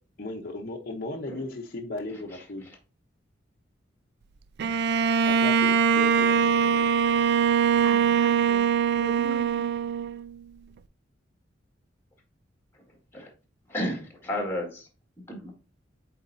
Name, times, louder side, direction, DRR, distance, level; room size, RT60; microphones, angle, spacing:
voice 1, 0.2-2.7 5.2-6.9, left 2 dB, 50° left, -1 dB, 0.9 m, -36 dB
Bowed string instrument, 4.6-10.3, right 7 dB, 55° right, 0.3 m, -22 dB
voice 2, 7.8-8.7 9.0-9.7 15.4-15.5, right 3 dB, 75° right, 0 dB, 1.2 m, -37 dB
voice 3, 12.9-13.3 13.7-14.9 15.3-15.5, left 1 dB, 10° left, 1 dB, 2.0 m, -33 dB
8.2 x 4.2 x 2.7 m, 0.33 s
head